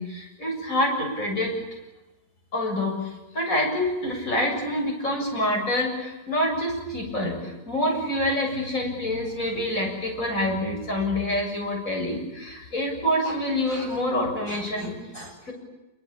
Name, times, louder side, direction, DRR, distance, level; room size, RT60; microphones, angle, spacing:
voice 1, 0.0-1.6 2.5-3.0 3.3-15.5, left 1 dB, 55° left, 1 dB, 8.0 m, -27 dB
26.5 x 24.0 x 8.9 m, 1.0 s
omnidirectional pair, 1.7 m